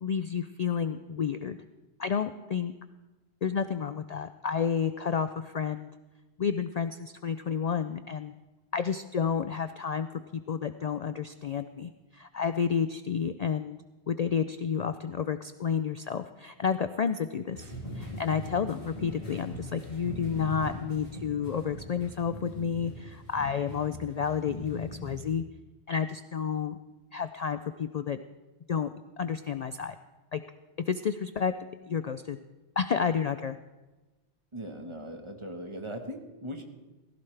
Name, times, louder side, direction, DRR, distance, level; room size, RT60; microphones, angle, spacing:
voice 1, 0.0-1.6 2.0-2.7 3.4-5.9 6.4-8.3 8.7-10.1 10.3-13.8 14.1-25.4 25.9-26.8 27.1-28.2 28.7-28.9 29.2-29.9 30.3-30.4 30.9-31.5 31.9-32.4 32.8-33.6, left 7 dB, 55° left, 10 dB, 0.4 m, -30 dB
sound 1, 17.5-25.3, equal, 40° left, 5.0 m, -41 dB
voice 2, 34.5-36.6, equal, 30° right, 4 dB, 1.3 m, -39 dB
16.5 x 15.0 x 3.3 m, 1.1 s
omnidirectional pair, 1.1 m